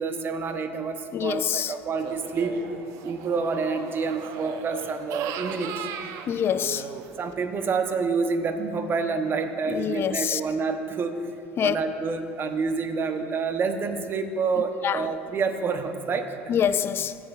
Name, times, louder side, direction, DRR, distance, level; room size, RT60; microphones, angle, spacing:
voice 1, 0.0-2.6 3.0-5.9 7.2-11.3 11.6-16.4, right 4 dB, 35° right, 0.8 m, -28 dB
voice 2, 1.1-1.7 6.3-6.9 9.7-10.4 11.6-11.8 14.8-15.1 16.5-17.2, left 9 dB, 40° left, 0.4 m, -25 dB
sound 1, 2.0-7.3, right 7 dB, 60° right, 0.5 m, -37 dB
16.0 x 7.0 x 2.4 m
hypercardioid pair, 75°, 6 cm